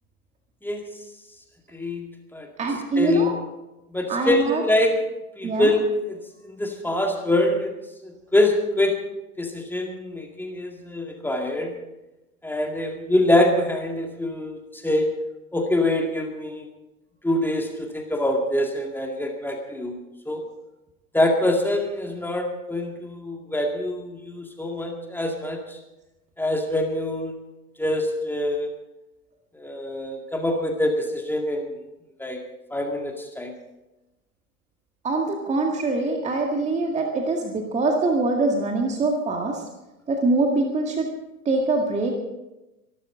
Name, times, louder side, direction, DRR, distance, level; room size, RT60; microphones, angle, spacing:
voice 1, 1.7-2.5 3.0-3.3 3.9-5.0 5.4-6.2 6.4-7.7 8.0-9.0 9.4-11.7 12.4-15.1 15.5-16.7 17.2-20.0 20.3-20.4 21.1-25.8 26.4-27.4 27.8-28.7 29.5-31.7 32.2-32.4 32.7-33.5, left 1 dB, 5° left, 2 dB, 2.1 m, -24 dB
voice 2, 2.6-3.3 4.1-4.6 5.4-5.7 35.0-39.6 40.1-41.1 41.5-42.1, right 3 dB, 15° right, 2 dB, 1.9 m, -23 dB
24.0 x 12.5 x 3.9 m, 0.99 s
figure-of-eight pair, 100°, 45 cm